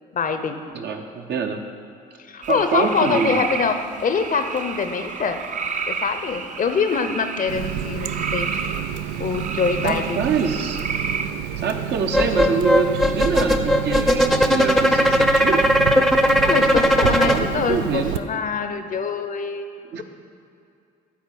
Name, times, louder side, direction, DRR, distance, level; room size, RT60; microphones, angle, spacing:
voice 1, 0.1-0.6 2.3-5.4 5.9-8.5 9.2-10.2 16.2-19.7 20.0-20.1, left 5 dB, 45° left, 9 dB, 0.7 m, -24 dB
voice 2, 0.7-1.6 2.4-3.4 9.8-10.8 11.6-15.6 17.0-18.1 19.9-20.0, right 5 dB, 60° right, 4 dB, 0.9 m, -25 dB
sound 1, 2.4-11.3, right 5 dB, 40° right, 0.7 m, -31 dB
Water tap faucet, 7.5-18.2, right 9 dB, 80° right, 0.4 m, -29 dB
sound 2, 12.1-17.4, equal, ahead, 0.7 m, -18 dB
9.3 x 4.0 x 7.0 m, 2.5 s
hypercardioid pair, 55°, 20 cm